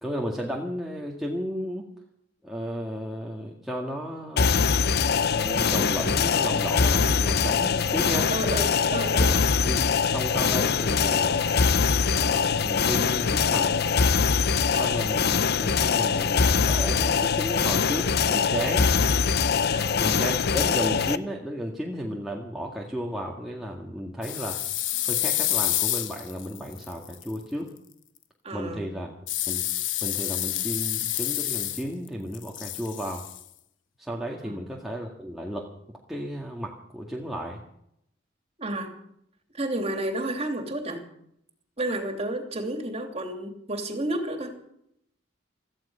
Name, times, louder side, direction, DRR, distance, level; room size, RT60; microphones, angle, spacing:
voice 1, 0.0-1.8 2.4-4.5 5.3-8.3 9.6-11.5 12.1-13.8 14.7-18.9 20.0-24.6 25.1-27.7 28.5-29.6 30.0-33.2 34.0-35.7 36.1-37.6, equal, ahead, -3 dB, 1.9 m, -33 dB
sound 1, 4.4-21.2, left 5 dB, 60° left, 0.7 m, -23 dB
voice 2, 8.3-9.5 14.7-14.9 19.7-20.0 28.4-28.9 34.5-34.6 38.6-38.9 39.5-41.0 41.8-44.6, right 1 dB, 35° right, 4 dB, 3.0 m, -31 dB
sound 2, 24.2-27.3 29.3-32.1 32.3-33.4, left 13 dB, 80° left, 1.1 m, -28 dB
17.0 x 14.5 x 5.6 m, 0.73 s
head